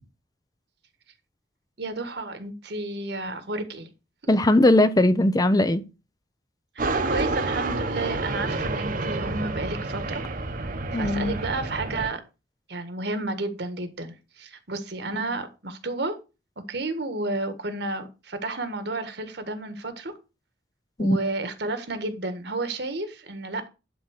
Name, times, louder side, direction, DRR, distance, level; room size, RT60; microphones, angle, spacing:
voice 1, 1.8-3.9 4.2-4.3 6.7-10.2 10.5-12.2 12.7-16.2 16.7-20.1 21.0-23.7, right 2 dB, 65° right, 1.6 m, -32 dB
voice 2, 4.3-5.8 10.9-11.4 21.0-21.2, left 1 dB, 20° left, 0.6 m, -19 dB
sound 1, 6.8-12.1, right 2 dB, 50° right, 1.1 m, -29 dB
11.5 x 3.9 x 6.4 m
head